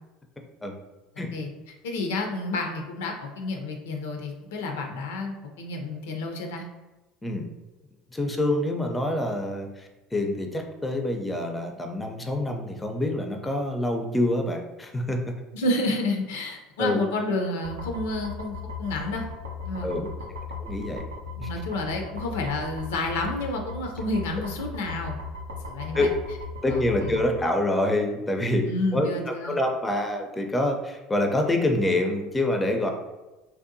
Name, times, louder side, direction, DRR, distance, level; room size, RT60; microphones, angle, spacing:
voice 1, 1.8-6.6 15.5-19.2 19.6-20.3 21.4-25.1 25.7-26.1 26.7-27.2 28.7-29.5, left 2 dB, 75° left, 3 dB, 0.4 m, -30 dB
voice 2, 8.1-15.3 16.8-17.0 19.8-20.1 20.6-21.0 21.4-21.5 25.9-26.1 26.6-32.9, left 1 dB, 15° left, 4 dB, 0.4 m, -26 dB
sound 1, 17.6-27.3, left 4 dB, 90° right, 0.5 m, -37 dB
2.7 x 2.1 x 2.6 m, 1.1 s
hypercardioid pair, 75°, 0 cm